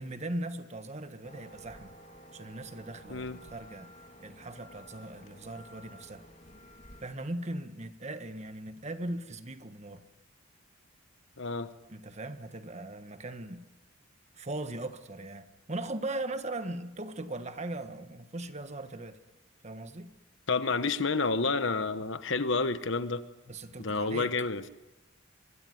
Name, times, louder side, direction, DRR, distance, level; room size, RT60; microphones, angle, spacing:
voice 1, 0.0-1.9 2.3-3.9 4.2-6.2 7.0-10.0 11.9-13.6 14.3-19.2 19.6-20.1 23.5-24.3, right 2 dB, 35° right, 1.4 m, -39 dB
sound 1, 1.2-7.1, equal, 35° left, 3.2 m, -53 dB
voice 2, 11.4-11.7 20.5-23.2 23.8-24.6, left 4 dB, 60° left, 1.2 m, -29 dB
24.0 x 21.5 x 9.4 m
head